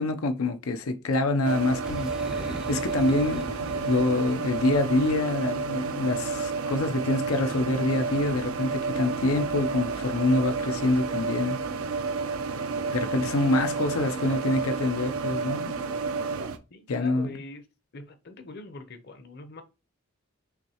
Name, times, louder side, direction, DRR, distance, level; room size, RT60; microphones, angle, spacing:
voice 1, 0.0-2.1 2.4-11.6 12.9-15.8 16.9-17.4, left 2 dB, 85° left, 0.6 m, -26 dB
sound 1, 1.4-16.6, right 4 dB, 85° right, 0.6 m, -31 dB
Boom, 1.8-4.6, equal, 5° right, 0.3 m, -40 dB
voice 2, 16.7-17.6 17.9-19.6, left 2 dB, 50° left, 0.7 m, -43 dB
5.8 x 3.1 x 2.9 m
head